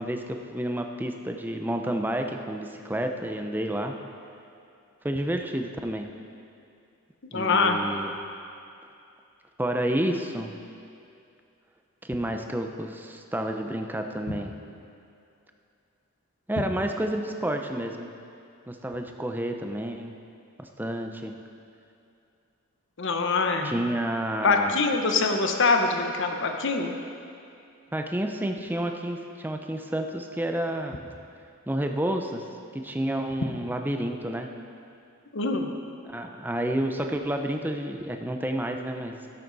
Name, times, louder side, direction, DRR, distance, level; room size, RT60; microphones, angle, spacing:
voice 1, 0.0-3.9 5.0-6.1 7.3-8.1 9.6-10.5 12.0-14.5 16.5-18.1 18.7-20.1 20.6-21.4 23.6-24.8 27.9-31.0 31.7-32.5 32.7-34.5 36.1-39.2, right 1 dB, 10° right, 4 dB, 0.6 m, -30 dB
voice 2, 7.3-7.8 23.0-23.7 24.4-27.0 35.3-35.7, left 4 dB, 60° left, 4 dB, 0.9 m, -24 dB
12.5 x 11.5 x 4.1 m, 2.5 s
head